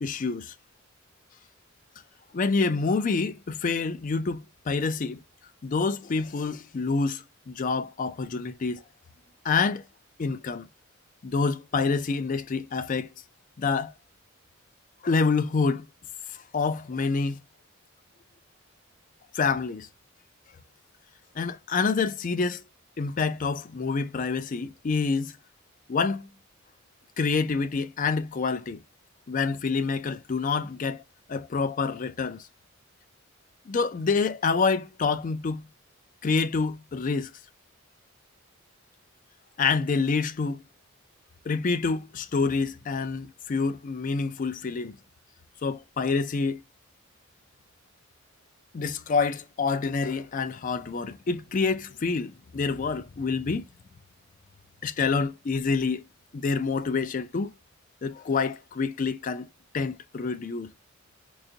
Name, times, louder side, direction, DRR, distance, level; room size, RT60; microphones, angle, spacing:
voice 1, 0.0-0.5 2.3-5.2 5.6-8.8 9.4-9.8 10.2-10.7 11.2-13.1 13.6-13.9 15.0-15.9 16.3-17.4 19.3-19.9 21.4-22.6 23.0-25.3 25.9-26.3 27.2-28.8 29.3-31.0 31.3-32.5 33.7-35.7 36.2-37.3 39.6-40.6 41.5-45.0 45.6-46.6 48.7-53.6 54.8-56.0 56.3-57.5 58.0-59.5 59.7-60.7, left 4 dB, 40° left, 0.4 m, -27 dB
3.9 x 2.5 x 2.7 m
head